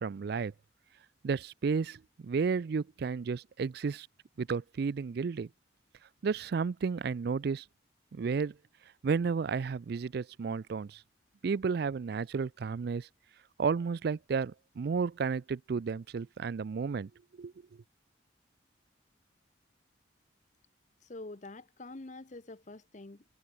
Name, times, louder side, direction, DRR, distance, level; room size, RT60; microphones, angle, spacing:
voice 1, 0.0-0.5 1.2-4.1 4.4-5.5 6.2-7.6 8.1-8.5 9.0-11.0 11.4-13.1 13.6-17.1 17.4-17.5, right 5 dB, 55° right, 0.4 m, -32 dB
voice 2, 21.0-23.2, left 2 dB, 40° left, 0.9 m, -46 dB
head